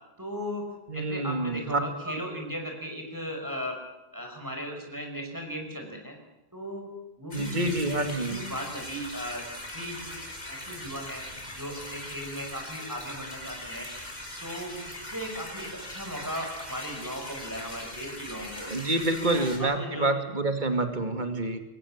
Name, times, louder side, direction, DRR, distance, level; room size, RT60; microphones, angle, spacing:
voice 1, 0.2-0.7 0.9-3.8 4.1-6.2 6.5-6.9 7.2-9.5 9.7-11.2 11.5-13.9 14.4-18.7 19.2-20.1, equal, 20° right, 1 dB, 5.3 m, -37 dB
voice 2, 0.9-1.8 2.1-2.2 7.3-8.4 18.7-21.6, right 2 dB, 45° right, 7 dB, 2.5 m, -27 dB
sound 1, 7.3-19.6, left 1 dB, 40° left, 4.4 m, -40 dB
24.0 x 18.5 x 7.4 m, 1.0 s
omnidirectional pair, 1.1 m